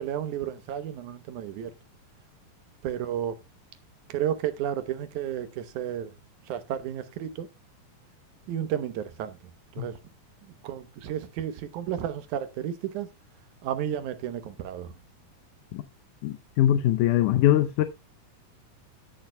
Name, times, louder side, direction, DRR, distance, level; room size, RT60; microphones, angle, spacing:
voice 1, 0.0-1.7 2.8-3.4 4.1-6.1 6.5-7.5 8.5-9.4 9.7-10.0 10.4-13.1 13.6-14.9, right 10 dB, 80° right, 2.4 m, -32 dB
voice 2, 16.2-17.8, left 12 dB, 85° left, 2.2 m, -22 dB
16.0 x 6.6 x 2.2 m
omnidirectional pair, 3.5 m